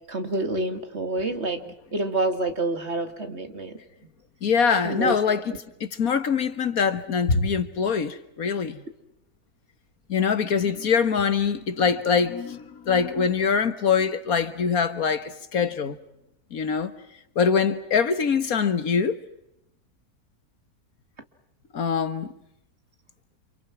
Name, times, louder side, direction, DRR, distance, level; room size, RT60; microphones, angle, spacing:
voice 1, 0.1-1.6 1.9-3.7 4.8-5.1, right 2 dB, 45° right, 2.7 m, -27 dB
voice 2, 4.4-5.4 5.8-8.8 10.1-16.0 16.5-16.9 17.3-19.2 21.7-22.3, left 6 dB, 70° left, 1.8 m, -23 dB
29.5 x 28.0 x 6.1 m
omnidirectional pair, 1.6 m